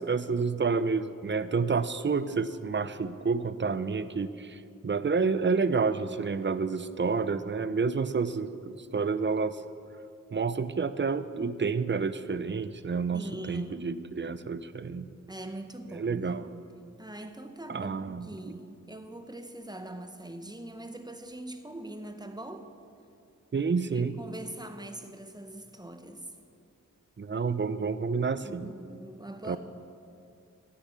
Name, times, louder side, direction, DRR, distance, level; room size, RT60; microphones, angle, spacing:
voice 1, 0.0-9.6 10.3-15.1 15.9-16.4 17.7-18.3 23.5-24.1 27.2-28.7 29.5-29.6, right 4 dB, 35° right, 13 dB, 0.5 m, -29 dB
voice 2, 13.1-14.0 15.3-16.5 17.0-22.7 23.9-26.3 28.4-29.6, right 1 dB, 10° right, 8 dB, 0.9 m, -42 dB
15.0 x 6.8 x 5.8 m, 2.5 s
wide cardioid pair, 50°, 32 cm